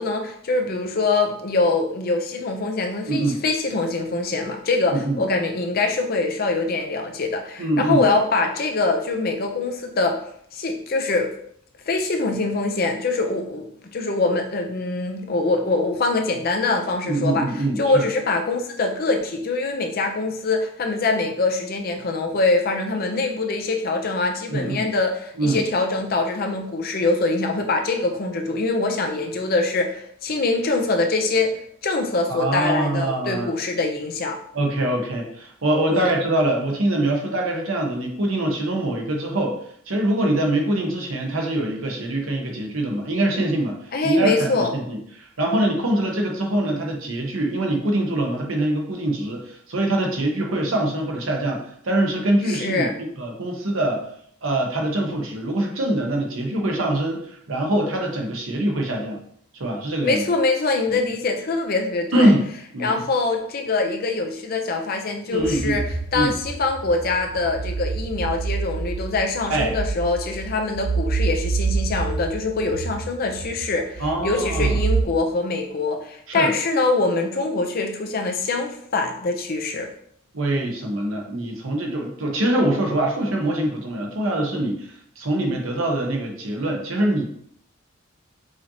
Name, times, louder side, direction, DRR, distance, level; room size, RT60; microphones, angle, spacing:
voice 1, 0.0-10.2 10.5-11.3 11.9-17.5 17.8-31.6 31.8-34.4 35.9-36.1 43.9-44.7 52.4-52.9 60.0-62.3 62.8-65.8 66.1-79.9, left 3 dB, 45° left, 4 dB, 0.5 m, -23 dB
voice 2, 3.1-3.4 4.9-5.2 7.6-8.1 17.1-18.1 24.5-24.9 25.4-25.6 32.3-33.5 34.5-39.5 39.9-43.7 44.0-54.1 54.4-57.2 57.5-59.2 59.5-60.2 62.1-62.4 62.7-62.9 65.3-65.8 66.1-66.3 69.5-69.7 74.0-74.8 76.3-76.5 80.3-84.9 85.2-87.2, right 1 dB, 75° right, 1 dB, 0.9 m, -23 dB
sound 1, 65.4-75.0, right 4 dB, 55° right, 0.5 m, -27 dB
4.8 x 2.8 x 2.7 m, 0.65 s
head